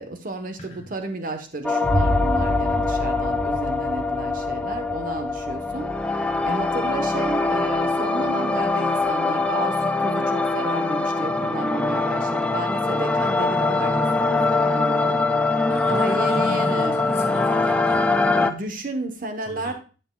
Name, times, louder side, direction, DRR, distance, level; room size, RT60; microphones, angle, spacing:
voice 1, 0.0-15.2 15.9-17.0 18.4-19.7, right 2 dB, 50° right, 7 dB, 1.1 m, -32 dB
sound 1, 1.6-18.5, left 3 dB, 5° left, 0.5 m, -23 dB
Boom, 1.8-9.7, equal, 10° right, 5.4 m, -30 dB
voice 2, 15.7-18.0 19.5-19.7, left 1 dB, 35° left, 0 dB, 4.0 m, -36 dB
11.5 x 8.0 x 2.3 m, 0.34 s
head